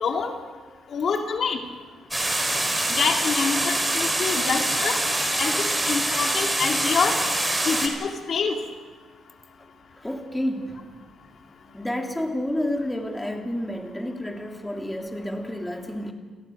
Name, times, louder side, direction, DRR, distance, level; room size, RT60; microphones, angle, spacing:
voice 1, 0.0-0.3 0.9-1.6 3.0-5.0 5.4-7.2 7.7-8.6, left 5 dB, 55° left, 3 dB, 2.2 m, -26 dB
sound 1, 2.1-7.9, right 1 dB, 10° right, 4.9 m, -24 dB
voice 2, 10.0-10.9 11.5-16.1, left 1 dB, 10° left, 3 dB, 3.1 m, -30 dB
29.5 x 17.0 x 6.6 m, 1.4 s
cardioid pair, 90°, 0 cm